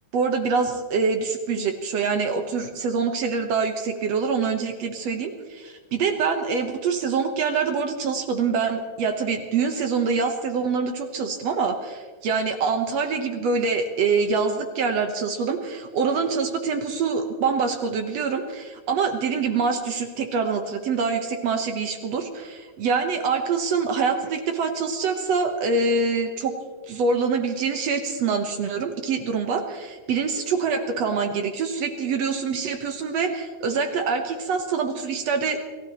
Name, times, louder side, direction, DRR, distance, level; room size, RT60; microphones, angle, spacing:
voice 1, 0.1-26.6 26.9-35.6, right 5 dB, 65° right, 5 dB, 2.0 m, -25 dB
29.5 x 15.5 x 3.0 m, 1.5 s
omnidirectional pair, 3.7 m